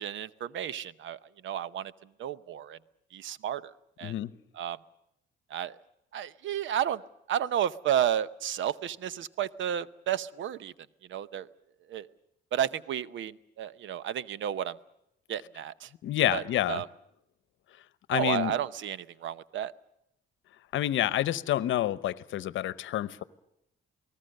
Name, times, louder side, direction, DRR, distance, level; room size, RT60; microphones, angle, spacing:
voice 1, 0.0-1.9 2.2-2.8 3.1-3.7 4.0-4.1 4.5-4.8 5.5-5.8 6.1-7.0 7.3-10.7 11.1-11.5 11.9-12.1 12.5-14.8 15.3-15.9 16.3-16.9 18.1-19.7, right 10 dB, 75° right, 17 dB, 0.8 m, -32 dB
voice 2, 4.0-4.3 16.0-16.8 18.1-18.5 20.7-23.2, left 13 dB, 75° left, 17 dB, 0.9 m, -28 dB
28.5 x 19.0 x 6.6 m, 0.81 s
cardioid pair, 90°, 20 cm